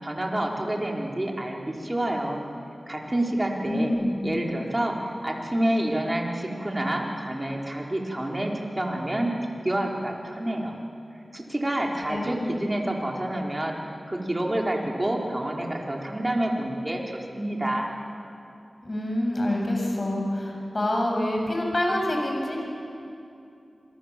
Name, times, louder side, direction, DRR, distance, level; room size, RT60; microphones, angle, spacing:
voice 1, 0.0-2.4 2.9-3.9 4.2-9.3 9.6-10.7 11.3-13.7 14.1-17.0 17.4-17.9, right 1 dB, 30° right, 0 dB, 4.4 m, -28 dB
voice 2, 3.7-4.2 12.1-12.5 18.8-22.6, left 1 dB, 45° left, 0 dB, 7.4 m, -26 dB
27.0 x 22.5 x 7.7 m, 2.7 s
cardioid pair, 45°, 0 cm